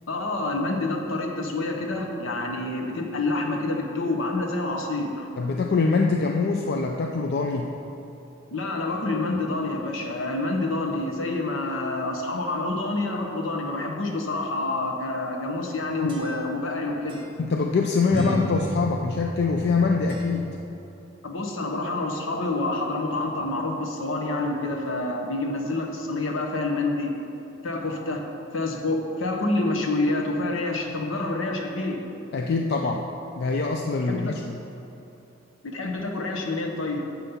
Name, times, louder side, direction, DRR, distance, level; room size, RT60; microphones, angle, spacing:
voice 1, 0.1-5.3 8.5-17.2 21.2-27.2 27.6-28.2 28.5-32.0 34.1-34.4 35.6-37.1, left 2 dB, 75° left, 2 dB, 0.9 m, -27 dB
voice 2, 5.4-7.7 16.0-16.2 17.4-20.6 32.3-33.1 33.4-34.5, left 4 dB, 55° left, 2 dB, 0.4 m, -24 dB
Accoustic Guitar Gloomy Calm Song, 15.6-16.7 17.1-17.3 18.1-20.6, equal, 25° right, 1.4 m, -33 dB
7.3 x 5.4 x 5.7 m, 2.9 s
head